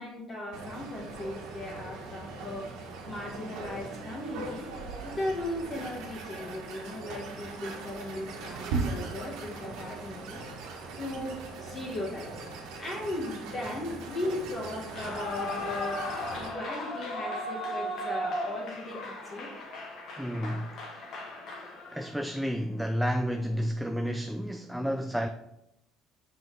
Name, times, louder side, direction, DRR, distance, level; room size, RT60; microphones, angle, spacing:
voice 1, 0.0-4.6 5.0-10.4 10.9-12.3 12.8-19.5, left 1 dB, 35° left, 1.7 m, -37 dB
sound 1, 0.5-16.5, right 3 dB, 85° right, 1.5 m, -39 dB
Clapping / Cheering / Applause, 14.8-22.2, left 1 dB, 60° left, 1.9 m, -37 dB
voice 2, 20.2-21.1 21.9-25.3, equal, ahead, 0.4 m, -31 dB
5.8 x 5.4 x 4.7 m
cardioid pair, 115°, 0 cm